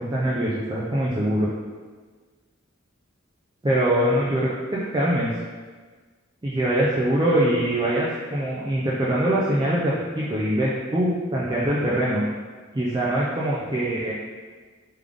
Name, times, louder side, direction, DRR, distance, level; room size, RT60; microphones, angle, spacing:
voice 1, 0.0-1.5 3.6-5.3 6.4-12.2 12.7-14.1, right 1 dB, 20° right, -6 dB, 0.4 m, -23 dB
3.6 x 3.3 x 3.4 m, 1.5 s
head